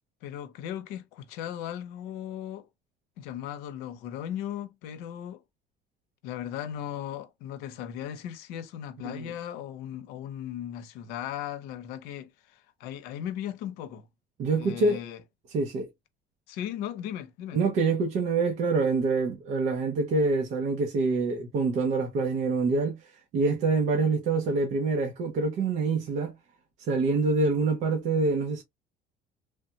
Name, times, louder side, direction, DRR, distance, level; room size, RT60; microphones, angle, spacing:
voice 1, 0.2-2.7 3.2-5.4 6.2-14.1 14.6-15.2 16.5-17.6, left 10 dB, 85° left, 0.7 m, -37 dB
voice 2, 14.4-15.0 15.5-15.9 17.5-23.0 23.3-26.3 26.9-28.6, right 3 dB, 50° right, 0.7 m, -26 dB
3.3 x 2.2 x 2.7 m
cardioid pair, 175°, 16 cm